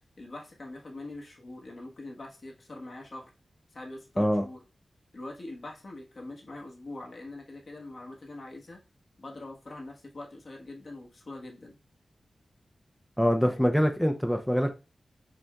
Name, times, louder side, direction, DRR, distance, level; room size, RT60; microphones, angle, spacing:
voice 1, 0.2-3.3 3.7-4.6 5.1-8.8 9.2-11.8 13.5-13.7, left 2 dB, 60° left, 1.3 m, -43 dB
voice 2, 13.2-14.7, equal, ahead, 0.6 m, -24 dB
5.2 x 3.4 x 2.3 m
cardioid pair, 55°, 0 cm